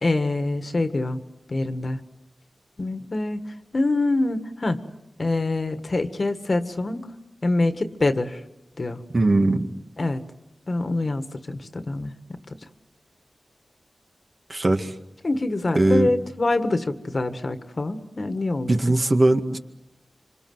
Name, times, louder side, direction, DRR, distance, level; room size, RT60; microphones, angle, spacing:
voice 1, 0.0-1.2 1.5-2.0 2.8-4.9 5.2-7.1 7.4-8.4 8.8-9.0 10.0-10.2 10.7-12.4 15.2-18.9, left 2 dB, 50° left, 8 dB, 1.8 m, -25 dB
voice 2, 9.1-9.7 14.5-14.9 15.8-16.1 18.7-19.6, right 2 dB, 45° right, 5 dB, 1.9 m, -20 dB
26.5 x 26.0 x 8.0 m, 0.91 s
wide cardioid pair, 65°, 0 cm